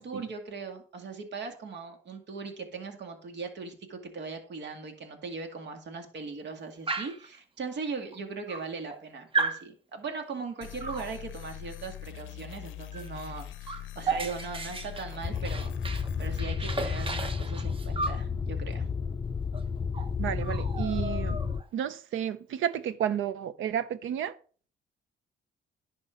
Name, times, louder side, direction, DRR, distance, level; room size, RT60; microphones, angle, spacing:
voice 1, 0.0-15.7 16.2-18.9, right 4 dB, 60° right, 2.2 m, -39 dB
Dog, 6.9-7.3 8.1-8.2 8.5-9.0 9.3-9.6 10.8-11.1 12.9-13.1 13.4-16.1 16.4-18.2 19.5-19.6 19.9-20.1 20.4-21.7, right 3 dB, 25° right, 1.0 m, -34 dB
sound 1, 10.6-16.4, left 12 dB, 80° left, 0.5 m, -43 dB
sound 2, 15.2-21.6, left 5 dB, 25° left, 0.5 m, -32 dB
voice 2, 20.2-21.4 21.7-24.3, right 9 dB, 80° right, 0.8 m, -32 dB
10.5 x 4.4 x 5.9 m
cardioid pair, 90°, 20 cm